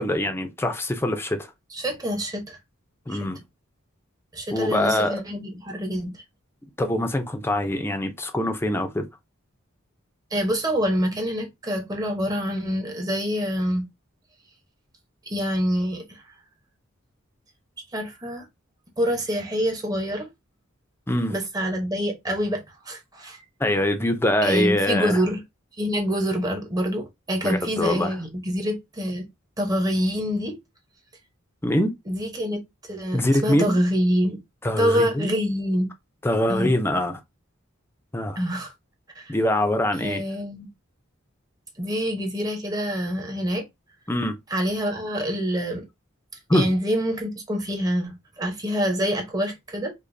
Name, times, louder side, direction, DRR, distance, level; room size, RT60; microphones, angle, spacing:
voice 1, 0.0-1.5 3.1-3.4 4.5-5.2 6.8-9.1 21.1-21.3 23.6-25.2 27.4-28.1 31.6-31.9 33.1-33.7 34.6-35.3 36.2-37.2 38.1-38.4 39.3-40.2 44.1-44.4 46.5-46.7, left 1 dB, 10° left, 0.5 m, -23 dB
voice 2, 1.7-2.6 3.1-3.3 4.3-6.2 10.3-13.9 15.3-16.2 17.9-18.5 19.0-20.3 21.3-23.4 24.4-25.4 25.8-29.2 29.6-30.6 32.1-32.6 32.9-34.4 34.8-35.9 36.5-36.7 38.4-38.7 39.1-39.3 40.0-40.7 41.8-43.6 44.5-45.9 46.5-49.9, equal, 20° right, 0.9 m, -26 dB
5.0 x 2.2 x 2.6 m
head